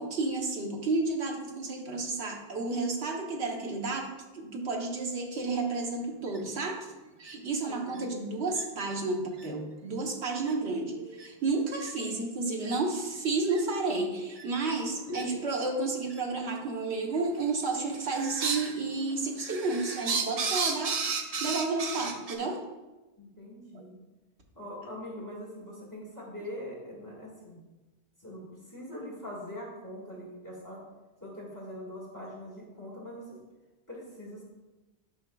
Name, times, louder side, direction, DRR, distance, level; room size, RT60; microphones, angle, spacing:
voice 1, 0.0-6.9 7.2-10.9 11.2-21.0 21.4-22.6 23.7-23.8, right 3 dB, 80° right, 1 dB, 1.3 m, -31 dB
sound 1, 6.3-6.4 7.2-7.3 8.0-8.1 8.5-8.6 9.3-9.5 10.5-10.6 11.1-11.3 11.8-11.9 12.7-12.8 13.5-13.6 14.3-14.4 15.1-15.2 16.1-16.2 17.1-17.5 17.8-18.7 19.1-22.4, right 4 dB, 45° right, 0.5 m, -33 dB
voice 2, 7.7-8.2 11.0-11.1 14.9-15.4 23.2-24.0 24.6-27.6 28.2-30.8 31.2-33.4 33.9-34.4, left 1 dB, 15° left, -5 dB, 1.8 m, -42 dB
9.7 x 5.6 x 2.3 m, 1.1 s
omnidirectional pair, 1.1 m